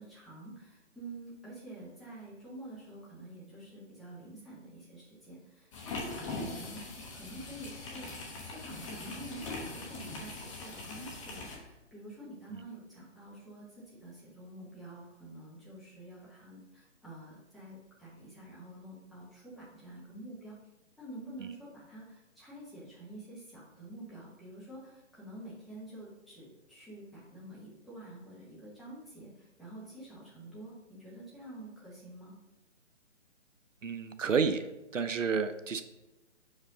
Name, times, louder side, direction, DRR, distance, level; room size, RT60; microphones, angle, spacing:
voice 1, 0.0-6.8 7.1-8.1 8.4-20.5 21.0-32.3, right 1 dB, ahead, -9 dB, 1.1 m, -48 dB
sound 1, 5.7-11.6, left 3 dB, 25° left, 1.1 m, -41 dB
voice 2, 33.8-34.7 34.9-35.8, right 5 dB, 85° right, 11 dB, 0.6 m, -30 dB
6.1 x 5.1 x 3.8 m, 0.98 s
figure-of-eight pair, 140°, 37 cm